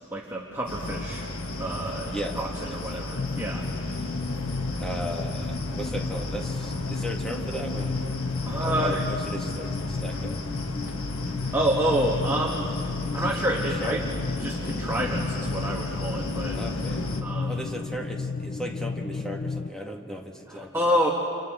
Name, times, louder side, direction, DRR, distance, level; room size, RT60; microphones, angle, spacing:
voice 1, 0.1-1.3 1.6-4.1 8.5-9.0 11.5-12.8 13.1-14.0 14.4-16.6 17.2-17.6 20.5-21.1, right 1 dB, 10° right, -2 dB, 1.4 m, -28 dB
sound 1, 0.7-17.2, left 1 dB, 75° left, 1.5 m, -34 dB
voice 2, 2.1-2.4 2.6-3.2 4.8-8.0 8.6-10.4 13.1-14.0 16.5-17.1 17.4-20.9, equal, 5° left, 1 dB, 1.7 m, -36 dB
sound 2, 3.2-19.7, left 4 dB, 45° left, 0.5 m, -33 dB
29.0 x 28.0 x 3.7 m, 2.6 s
head